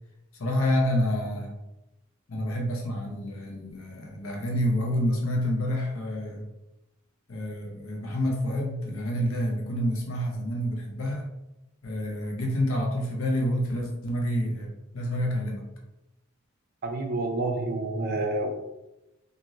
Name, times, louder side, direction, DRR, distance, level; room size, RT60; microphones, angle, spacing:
voice 1, 0.4-1.5 2.3-6.4 7.3-11.3 11.8-15.7, equal, 75° left, 0 dB, 0.7 m, -28 dB
voice 2, 16.8-18.5, right 2 dB, 50° right, 2 dB, 0.5 m, -28 dB
3.1 x 2.5 x 2.6 m, 0.92 s
head